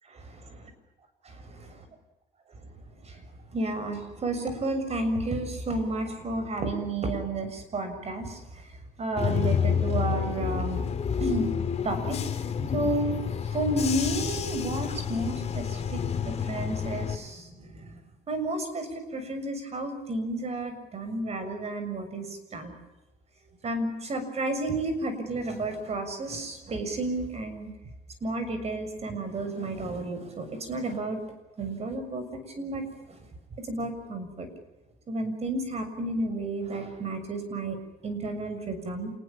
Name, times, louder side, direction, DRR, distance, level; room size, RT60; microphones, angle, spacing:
voice 1, 3.5-8.4 9.0-10.8 11.2-11.5 11.8-12.2 12.7-13.2 13.5-17.5 17.8-17.9 18.3-22.3 22.5-22.7 23.6-27.7 28.2-31.2 31.6-32.2 32.6-32.8 33.6-34.5 35.1-37.8 38.0-39.1, right 2 dB, 40° right, 9 dB, 6.9 m, -31 dB
Bus / Engine, 9.2-17.2, left 7 dB, 40° left, 2.8 m, -29 dB
28.5 x 20.0 x 7.5 m, 1.0 s
cardioid pair, 110°, 17 cm